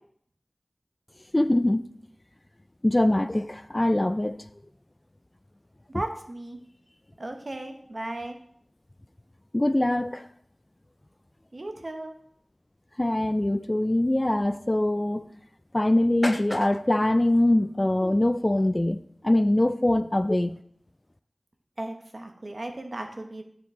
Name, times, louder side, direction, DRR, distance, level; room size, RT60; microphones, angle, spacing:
voice 1, 1.3-1.8 2.8-4.4 9.5-10.3 13.0-15.3 15.7-20.6, left 1 dB, 30° left, 13 dB, 0.3 m, -23 dB
voice 2, 5.9-6.6 7.2-8.4 11.5-12.1 21.8-23.4, right 1 dB, 60° right, 4 dB, 1.1 m, -36 dB
10.0 x 4.7 x 3.7 m, 0.64 s
wide cardioid pair, 45°, 0 cm